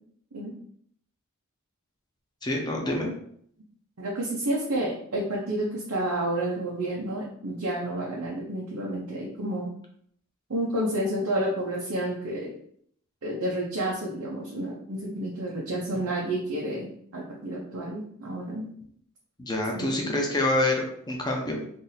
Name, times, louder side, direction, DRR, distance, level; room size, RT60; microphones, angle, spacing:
voice 1, 2.4-3.2 19.4-21.7, left 1 dB, 20° left, 1 dB, 0.6 m, -27 dB
voice 2, 4.0-9.7 10.5-12.5 13.2-18.7 19.7-20.2, right 1 dB, 90° right, -4 dB, 0.8 m, -30 dB
2.7 x 2.7 x 4.0 m, 0.65 s
head